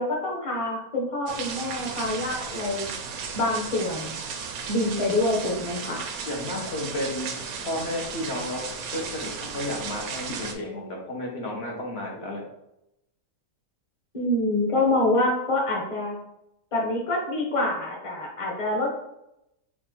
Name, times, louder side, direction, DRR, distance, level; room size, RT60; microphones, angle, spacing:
voice 1, 0.0-2.9 3.3-4.1 4.7-6.1 14.1-16.2 16.7-19.0, left 2 dB, 25° left, -2 dB, 0.9 m, -26 dB
sound 1, 1.3-10.5, right 5 dB, 80° right, 1.1 m, -35 dB
voice 2, 6.2-7.4 7.6-8.6 8.9-12.4, left 1 dB, 50° left, -1 dB, 1.0 m, -32 dB
4.4 x 2.4 x 4.3 m, 0.84 s
omnidirectional pair, 1.6 m